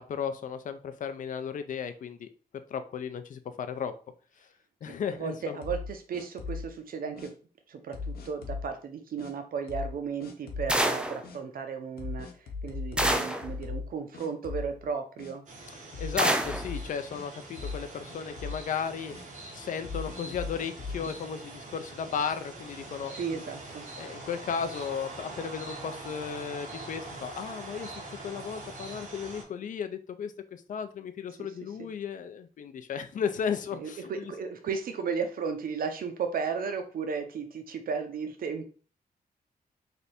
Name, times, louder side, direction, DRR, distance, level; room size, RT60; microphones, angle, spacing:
voice 1, 0.1-2.3 2.7-3.9 4.8-5.6 16.0-19.1 19.5-23.4 24.0-34.0, left 7 dB, 60° left, 9 dB, 0.4 m, -35 dB
voice 2, 4.8-7.3 7.7-15.4 23.1-23.8 31.3-31.9 33.7-38.7, right 5 dB, 70° right, 6 dB, 0.5 m, -35 dB
sound 1, 5.6-6.7 7.2-7.3 7.9-8.7 9.2-9.3 9.7-9.9 10.2-10.7 11.2-11.4 12.0-13.9 14.1-14.9 15.2-15.3 15.9-17.2 17.6-17.8 18.1-18.6 19.1-19.2 19.8-21.2, left 4 dB, 90° left, 0.8 m, -38 dB
sound 2, 10.7-11.2 13.0-13.5 16.2-16.7, right 1 dB, 5° right, 0.4 m, -26 dB
sound 3, 15.5-29.4, right 2 dB, 55° right, 1.3 m, -44 dB
3.3 x 2.6 x 4.1 m, 0.38 s
wide cardioid pair, 115°, 15 cm